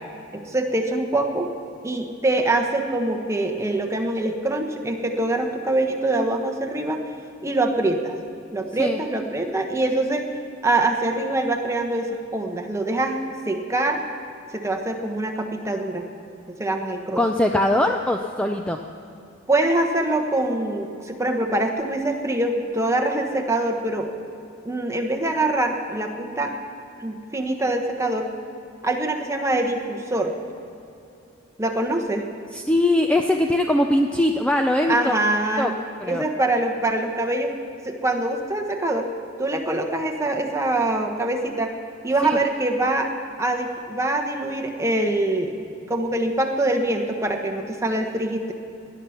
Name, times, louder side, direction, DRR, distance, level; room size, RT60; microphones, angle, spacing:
voice 1, 0.3-1.5 1.8-7.0 7.4-8.2 8.5-10.3 10.6-13.2 13.5-14.0 14.5-16.0 16.6-17.2 19.5-24.1 24.6-26.5 27.0-28.3 28.8-30.3 31.6-32.3 34.9-35.7 36.0-37.5 37.8-39.1 39.4-41.7 42.0-43.1 43.4-45.5 45.9-48.5, right 2 dB, 15° right, 3 dB, 1.1 m, -24 dB
voice 2, 17.2-18.8 32.5-35.1 35.6-35.7 36.0-36.2 42.2-42.4, left 1 dB, 5° left, 3 dB, 0.4 m, -21 dB
17.5 x 10.5 x 5.8 m, 2.7 s
head